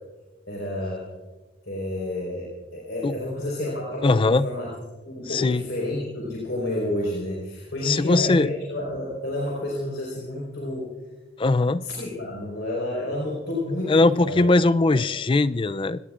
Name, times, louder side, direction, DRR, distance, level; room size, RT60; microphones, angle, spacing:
voice 1, 0.5-1.1 1.7-4.7 5.0-10.9 11.8-14.5 14.8-15.1, left 1 dB, 60° left, -4 dB, 4.5 m, -30 dB
voice 2, 4.0-4.5 5.3-5.6 7.8-8.5 11.4-11.8 13.9-16.0, left 2 dB, 25° left, 14 dB, 0.4 m, -20 dB
28.0 x 18.5 x 2.5 m, 1.3 s
head